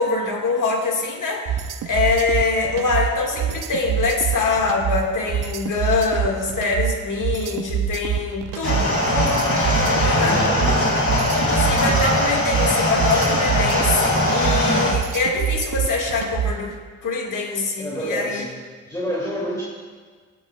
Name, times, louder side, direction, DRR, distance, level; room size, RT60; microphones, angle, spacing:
voice 1, 0.0-10.4 10.8-10.9 11.3-16.7 17.0-18.5, left 3 dB, 70° left, 0 dB, 2.0 m, -24 dB
sound 1, 1.5-16.7, right 9 dB, 75° right, 0.7 m, -25 dB
sound 2, 8.6-14.9, left 1 dB, 45° left, 3.3 m, -20 dB
voice 2, 10.2-10.9 17.8-18.5 18.9-19.6, equal, 10° left, -7 dB, 2.8 m, -28 dB
18.0 x 7.5 x 2.4 m, 1.5 s
supercardioid pair, 45°, 33 cm